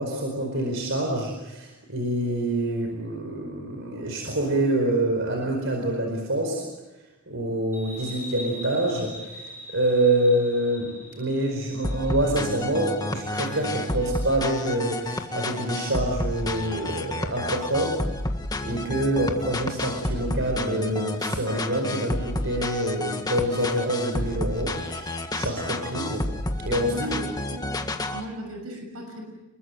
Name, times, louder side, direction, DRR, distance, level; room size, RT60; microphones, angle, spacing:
voice 1, 0.0-6.7 7.3-18.0 18.6-26.3 26.6-27.1, right 1 dB, 60° right, 2 dB, 4.8 m, -26 dB
sound 1, 7.7-14.9, equal, 10° right, 4.4 m, -43 dB
sound 2, 11.8-28.2, left 1 dB, 20° left, 1.7 m, -30 dB
voice 2, 26.9-29.2, right 1 dB, 90° right, 3 dB, 6.7 m, -37 dB
28.5 x 22.0 x 7.9 m, 1.1 s
head